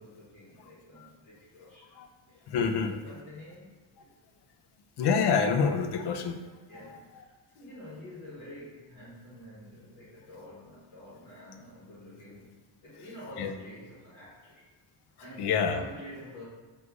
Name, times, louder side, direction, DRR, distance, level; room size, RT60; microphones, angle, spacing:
voice 1, 0.0-1.9 2.3-3.7 4.0-4.1 6.7-12.5 12.8-14.6 15.2-16.5, left 1 dB, 40° left, -7 dB, 1.1 m, -48 dB
voice 2, 2.5-2.9 5.0-6.3 13.4-13.5 15.4-15.8, left 6 dB, 55° left, 6 dB, 0.5 m, -26 dB
3.7 x 2.5 x 4.5 m, 1.4 s
cardioid pair, 145°, 48 cm